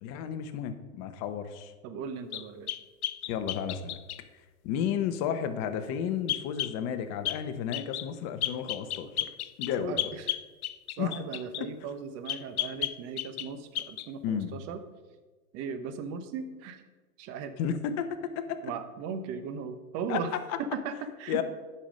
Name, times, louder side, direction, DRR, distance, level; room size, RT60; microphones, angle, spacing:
voice 1, 0.0-1.7 3.3-4.0 4.6-9.3 9.6-10.1 11.0-11.1 11.6-11.7 14.2-14.6 17.6-18.6 20.1-20.2 20.5-20.6 21.3-21.4, left 8 dB, 35° left, 9 dB, 0.9 m, -32 dB
voice 2, 1.8-2.8 9.8-10.4 11.0-14.8 15.5-16.8 17.2-17.6 18.6-21.4, right 6 dB, 35° right, 10 dB, 0.9 m, -37 dB
sound 1, 2.3-4.2 6.3-6.8 7.2-7.4 7.7-8.1 8.4-11.7 12.3-13.5 13.7-14.1, left 13 dB, 80° left, 0.6 m, -33 dB
10.0 x 5.7 x 5.2 m, 1.3 s
hypercardioid pair, 125°, 43 cm